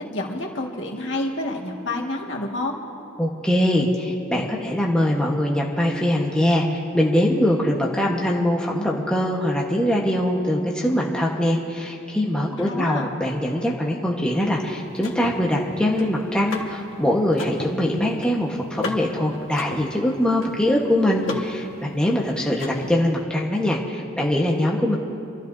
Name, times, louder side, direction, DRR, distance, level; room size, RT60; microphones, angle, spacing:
voice 1, 0.0-2.8 12.4-13.1, left 2 dB, 65° left, 0 dB, 1.8 m, -29 dB
voice 2, 3.2-25.0, left 1 dB, 5° left, -3 dB, 1.2 m, -22 dB
Car / Mechanisms, 14.3-23.2, left 2 dB, 80° left, 1.5 m, -37 dB
29.0 x 13.0 x 2.7 m, 2.6 s
head